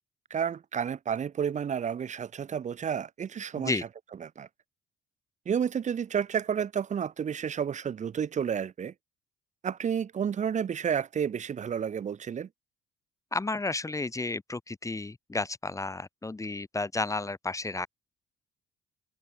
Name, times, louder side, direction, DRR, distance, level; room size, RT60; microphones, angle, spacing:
voice 1, 0.3-3.7 4.2-4.5 5.5-8.9 9.6-12.5, right 8 dB, 50° right, 7.4 m, -31 dB
voice 2, 13.3-17.9, left 3 dB, 20° left, 6.5 m, -32 dB
supercardioid pair, 70°, 15 cm